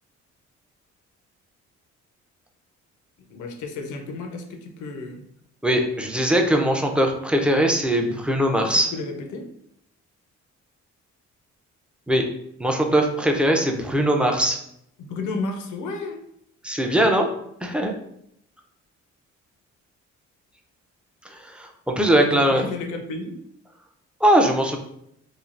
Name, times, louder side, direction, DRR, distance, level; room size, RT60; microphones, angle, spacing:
voice 1, 3.3-5.2 8.6-9.5 15.0-16.2 22.1-23.4, left 3 dB, 75° left, 5 dB, 0.6 m, -32 dB
voice 2, 5.6-8.9 12.1-12.2 12.6-14.6 16.6-17.3 17.6-17.9 21.2-22.6 24.2-24.8, right 1 dB, 5° right, 2 dB, 0.4 m, -20 dB
3.2 x 2.4 x 2.4 m, 0.73 s
cardioid pair, 90°, 30 cm